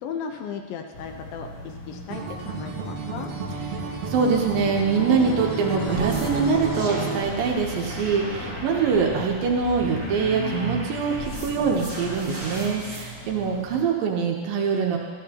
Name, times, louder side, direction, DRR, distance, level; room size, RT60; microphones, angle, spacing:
voice 1, 0.0-3.3, left 6 dB, 90° left, 3 dB, 2.6 m, -36 dB
sound 1, 0.9-13.8, left 2 dB, 60° left, 2.5 m, -37 dB
Acoustic guitar, 2.1-7.2, right 4 dB, 60° right, 1.7 m, -31 dB
voice 2, 4.1-15.0, right 5 dB, 80° right, 1 dB, 2.7 m, -24 dB
sound 2, 5.9-13.1, right 2 dB, 25° right, 1.2 m, -37 dB
13.5 x 13.5 x 2.9 m, 1.5 s
omnidirectional pair, 4.0 m